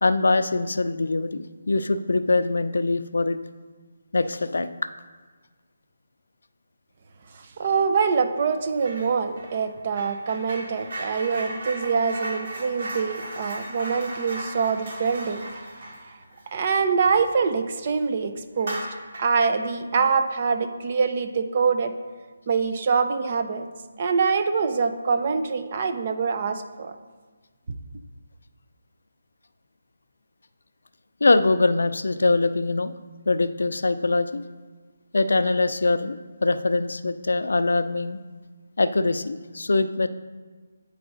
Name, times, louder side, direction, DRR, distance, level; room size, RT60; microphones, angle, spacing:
voice 1, 0.0-3.4 4.1-4.9 31.2-32.9 33.3-34.4 35.1-38.2 38.8-40.1, left 3 dB, 80° left, 11 dB, 0.5 m, -23 dB
voice 2, 7.3-15.4 16.5-18.8 19.2-21.9 22.5-23.7 24.0-26.9, right 5 dB, 35° right, 8 dB, 0.5 m, -24 dB
sound 1, 8.8-9.1 9.4-17.5 17.9-18.0 18.5-19.4, right 1 dB, 50° right, 2.3 m, -36 dB
9.1 x 4.8 x 3.9 m, 1.4 s
hypercardioid pair, 170°, 0 cm